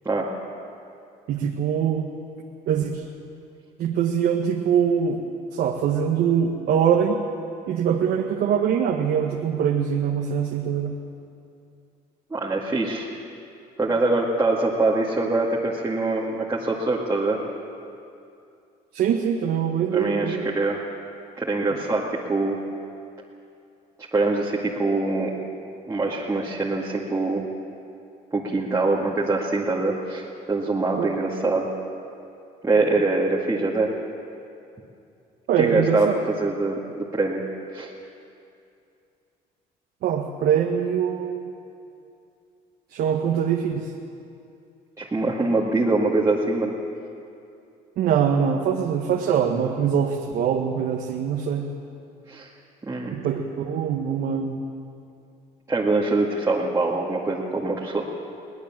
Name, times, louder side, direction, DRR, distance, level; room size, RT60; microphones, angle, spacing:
voice 1, 1.3-2.1 2.7-3.0 3.8-5.2 5.5-7.2 7.7-11.0 18.9-20.5 21.7-21.8 31.0-31.1 35.5-36.1 40.0-41.4 42.9-43.9 48.0-51.7 53.1-54.6, right 8 dB, 70° right, 1 dB, 1.5 m, -23 dB
voice 2, 12.3-13.1 13.8-17.4 19.9-20.8 21.4-22.6 24.1-25.4 25.9-27.5 28.3-31.7 32.6-33.9 35.6-37.4 37.7-37.9 45.0-46.7 52.3-52.5 52.8-53.2 55.7-58.0, right 3 dB, 20° right, -5 dB, 2.1 m, -24 dB
22.0 x 18.5 x 7.5 m, 2.6 s
cardioid pair, 110°, 17 cm